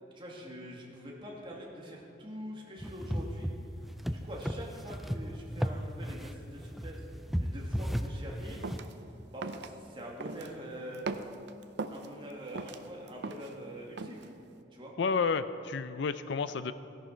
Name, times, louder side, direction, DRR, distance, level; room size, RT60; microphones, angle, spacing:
voice 1, 0.1-3.5 4.1-7.1 7.4-8.7 9.3-11.1 11.9-14.3 14.7-14.9, equal, 25° right, -2 dB, 2.1 m, -44 dB
sound 1, 2.8-8.8, equal, ahead, 0.4 m, -35 dB
sound 2, 8.6-8.9 9.4-9.7 10.2-10.6 10.9-12.1 12.5-13.6 14.0-14.3, right 3 dB, 65° right, 0.6 m, -39 dB
voice 2, 15.0-16.7, left 5 dB, 65° left, 13 dB, 0.5 m, -31 dB
16.5 x 11.0 x 4.5 m, 2.7 s
head